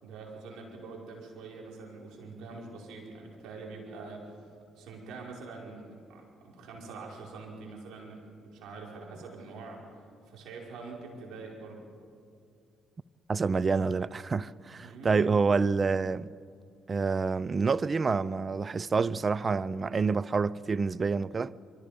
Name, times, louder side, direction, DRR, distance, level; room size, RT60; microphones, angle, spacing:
voice 1, 0.0-4.3 4.8-9.8 10.3-11.8 14.8-15.3, right 3 dB, 70° right, 5.4 m, -44 dB
voice 2, 13.3-16.3 16.9-21.5, right 4 dB, 40° right, 0.6 m, -27 dB
26.5 x 24.5 x 5.3 m
hypercardioid pair, 55°, 0 cm